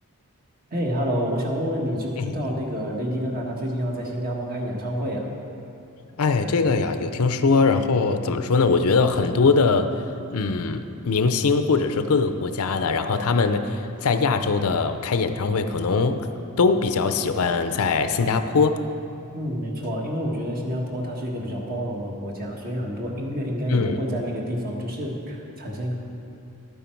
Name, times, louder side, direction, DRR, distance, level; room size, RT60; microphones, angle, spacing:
voice 1, 0.7-5.3 19.3-25.9, equal, 40° right, -1 dB, 1.5 m, -28 dB
voice 2, 6.2-9.9 10.3-16.3 16.6-18.8 23.7-24.0, left 4 dB, 75° left, 9 dB, 0.6 m, -21 dB
12.0 x 9.2 x 4.5 m, 2.7 s
head